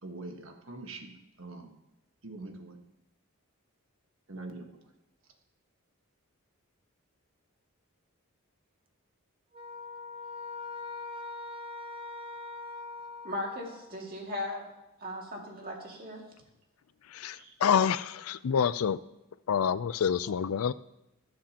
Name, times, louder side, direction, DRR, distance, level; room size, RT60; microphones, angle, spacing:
voice 1, 0.0-1.8 2.2-2.8 4.3-4.9, right 2 dB, 60° right, 4 dB, 1.3 m, -44 dB
sound 1, 9.5-14.0, left 4 dB, 25° right, 0.6 m, -42 dB
voice 2, 13.2-14.6 15.0-16.2 17.4-17.5, left 1 dB, 40° right, -1 dB, 2.2 m, -37 dB
voice 3, 17.1-19.0 19.5-20.7, left 7 dB, 75° left, 17 dB, 0.4 m, -27 dB
20.0 x 7.5 x 2.9 m, 0.90 s
head